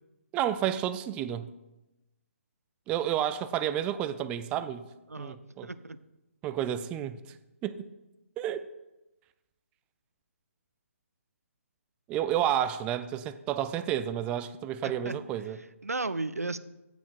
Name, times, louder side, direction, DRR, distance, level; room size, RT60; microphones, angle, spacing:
voice 1, 0.3-1.5 2.9-4.9 5.2-5.7 6.4-7.2 7.6-7.9 8.4-8.7 12.1-15.6, right 10 dB, 15° right, 0.4 m, -30 dB
voice 2, 5.6-6.0 14.8-15.2 15.8-16.6, right 3 dB, 90° right, 0.5 m, -34 dB
8.5 x 7.1 x 6.0 m
figure-of-eight pair, 140°, 8 cm